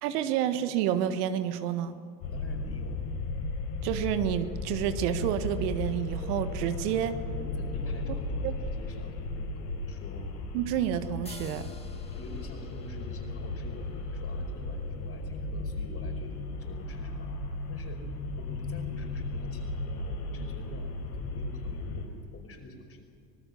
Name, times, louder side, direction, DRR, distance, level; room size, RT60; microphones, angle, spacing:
voice 1, 0.0-2.0 3.8-7.2 8.4-8.5 10.5-11.7, right 10 dB, 75° right, 10 dB, 1.6 m, -29 dB
sound 1, 2.2-22.1, left 2 dB, 70° left, 6.5 m, -35 dB
voice 2, 2.3-3.0 7.2-10.3 12.1-17.3 17.7-18.1 18.3-23.0, left 2 dB, 30° left, 4 dB, 5.3 m, -47 dB
sound 2, 11.3-14.8, left 3 dB, 15° left, 2.4 m, -53 dB
26.0 x 18.5 x 7.0 m, 2.5 s
supercardioid pair, 100°, 47 cm